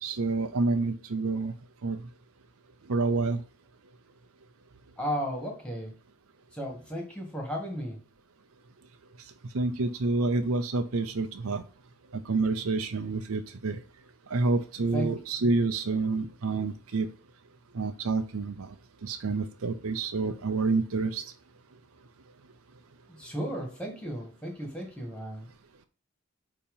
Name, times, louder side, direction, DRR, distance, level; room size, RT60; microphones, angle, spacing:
voice 1, 0.0-1.5 1.8-2.0 2.9-3.4 9.5-11.6 12.1-13.8 14.3-17.1 17.7-18.7 19.0-21.2, right 3 dB, 90° right, 7 dB, 0.7 m, -28 dB
voice 2, 5.0-6.0 6.5-8.0 14.9-15.1 23.1-25.5, equal, 5° left, 1 dB, 1.9 m, -34 dB
8.5 x 3.0 x 5.5 m, 0.37 s
head